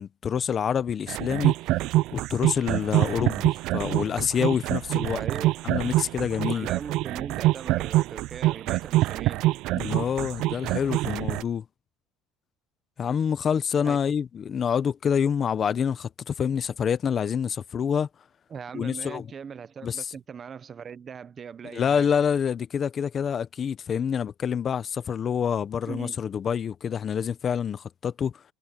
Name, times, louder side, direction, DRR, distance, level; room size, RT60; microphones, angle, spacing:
voice 1, 0.0-1.5 2.1-5.2 5.6-6.7 9.7-11.6 13.0-18.1 18.7-19.3 19.8-20.1 21.6-28.4, left 7 dB, 30° left, 0.8 m, -27 dB
sound 1, 1.1-11.4, right 17 dB, 60° right, 0.4 m, -25 dB
voice 2, 5.1-5.5 6.5-9.4 13.8-14.0 18.5-22.1 25.9-26.2, right 7 dB, 30° right, 0.8 m, -39 dB
cardioid pair, 130°, 0 cm